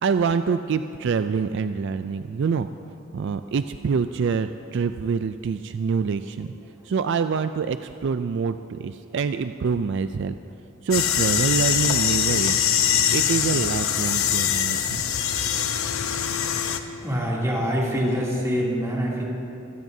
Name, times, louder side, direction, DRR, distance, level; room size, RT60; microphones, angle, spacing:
voice 1, 0.0-2.7 3.1-6.5 6.9-10.3 10.8-12.7 13.1-15.0, right 5 dB, 60° right, 10 dB, 0.3 m, -25 dB
voice 2, 6.4-6.8 16.9-19.2, equal, 15° right, -5 dB, 2.8 m, -26 dB
sound 1, 10.9-16.8, left 9 dB, 90° left, 0.8 m, -23 dB
24.5 x 16.5 x 2.7 m, 2.7 s
head